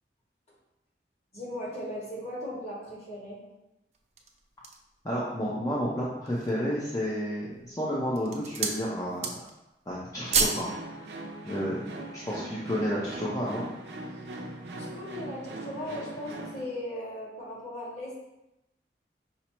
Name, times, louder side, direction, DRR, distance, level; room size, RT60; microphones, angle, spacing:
voice 1, 1.3-3.4 14.1-18.2, equal, 40° left, -7 dB, 1.6 m, -38 dB
sound 1, 3.9-4.9 5.5-5.6 6.1-6.7 7.4-7.7 8.1-8.8 9.1-9.6 9.9-10.7 11.0-11.2, right 5 dB, 40° right, 0.4 m, -30 dB
voice 2, 5.0-9.4 9.9-10.7 11.4-13.6, equal, 20° left, -7 dB, 0.6 m, -31 dB
sound 2, 10.2-16.6, right 1 dB, 80° right, 0.6 m, -41 dB
5.6 x 2.0 x 4.4 m, 0.92 s
head